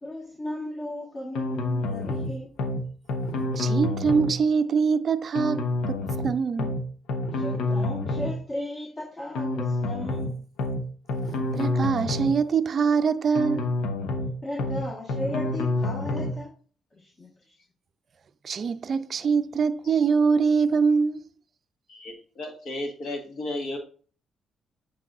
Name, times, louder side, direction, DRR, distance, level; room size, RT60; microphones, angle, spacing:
voice 1, 0.0-2.5 7.3-10.4 14.4-16.5 16.9-17.5, left 1 dB, 35° left, 1.3 m, -36 dB
sound 1, 1.3-2.3 2.6-2.8 3.1-4.3 5.3-6.3 6.6-6.8 7.1-8.3 9.3-10.3 10.6-10.8 11.1-12.3 13.3-14.3 14.6-14.8 15.1-16.3, left 2 dB, 85° left, 0.9 m, -28 dB
voice 2, 3.5-6.0 6.2-6.7 11.5-13.6 18.4-21.2, right 5 dB, 50° right, 0.4 m, -23 dB
voice 3, 21.9-23.8, left 1 dB, 70° left, 1.7 m, -34 dB
8.3 x 4.7 x 2.5 m
cardioid pair, 85°, 0 cm